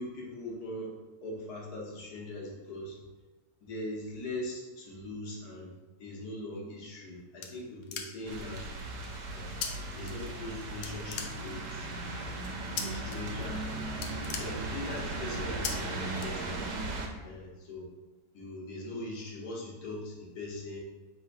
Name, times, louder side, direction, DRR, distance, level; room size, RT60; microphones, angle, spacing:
voice 1, 0.0-3.0 3.6-5.7 6.0-8.6 9.3-9.6 9.9-11.9 12.8-13.6 13.9-16.7 17.2-17.9 18.3-20.8, left 1 dB, 65° left, -3 dB, 1.5 m, -41 dB
sound 1, 6.7-8.4 9.6-9.7 10.0-10.5 10.8-11.8 12.8-13.2 13.5-13.6 13.9-15.1 15.6-15.7 16.2-16.8, left 7 dB, 85° left, 1.3 m, -38 dB
sound 2, 8.3-17.1, right 2 dB, 70° right, 1.2 m, -37 dB
3.5 x 3.1 x 4.6 m, 1.2 s
omnidirectional pair, 1.9 m